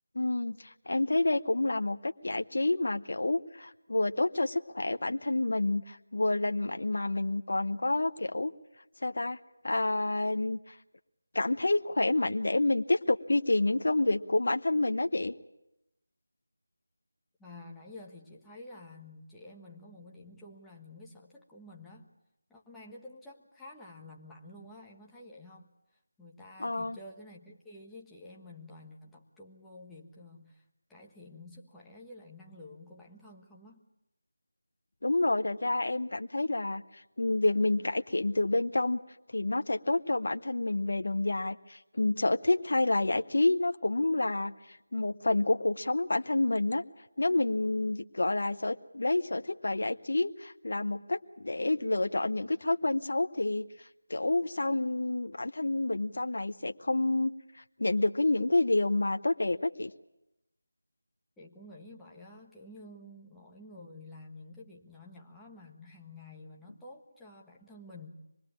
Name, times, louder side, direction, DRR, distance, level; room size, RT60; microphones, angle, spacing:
voice 1, 0.1-8.5 9.0-9.4 9.6-10.8 11.3-15.3 26.6-27.0 35.0-39.0 39.3-46.8 47.2-53.7 54.1-57.3 57.6-59.9, left 2 dB, 65° left, 10 dB, 0.9 m, -29 dB
voice 2, 17.4-22.1 22.5-25.7 26.2-30.6 30.9-33.8 61.4-68.1, left 2 dB, 5° left, -4 dB, 1.4 m, -50 dB
24.5 x 20.5 x 8.7 m, 0.90 s
figure-of-eight pair, 170°, 0 cm